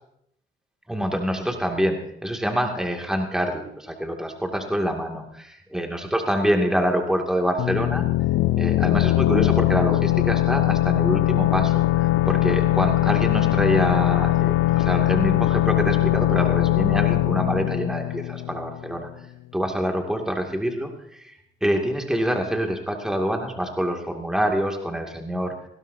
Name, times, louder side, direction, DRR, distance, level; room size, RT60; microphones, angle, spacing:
voice 1, 0.9-8.1 8.6-19.1 19.5-25.6, equal, 5° right, 2 dB, 2.3 m, -26 dB
sound 1, 7.6-19.1, left 16 dB, 90° left, 0.5 m, -21 dB
19.5 x 16.0 x 2.8 m, 0.74 s
cardioid pair, 90°, 20 cm